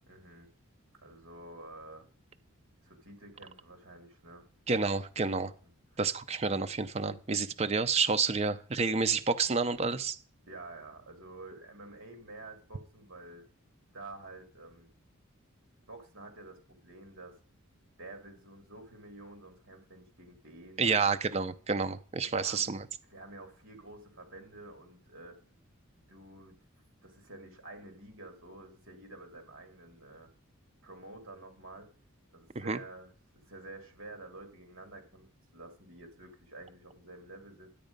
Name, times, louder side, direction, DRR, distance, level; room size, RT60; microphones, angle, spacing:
voice 1, 0.1-0.5 0.9-2.1 2.8-4.5 5.6-6.0 10.5-13.4 13.9-14.9 15.8-17.3 18.0-21.5 22.2-22.8 23.1-25.4 26.0-26.6 27.0-30.3 30.8-31.9 32.3-35.3 35.5-37.7, right 2 dB, 65° right, 6 dB, 2.6 m, -49 dB
voice 2, 4.7-5.5 6.0-10.2 20.8-22.8 32.6-32.8, right 4 dB, 30° right, 9 dB, 0.5 m, -29 dB
10.5 x 8.1 x 5.2 m, 0.42 s
head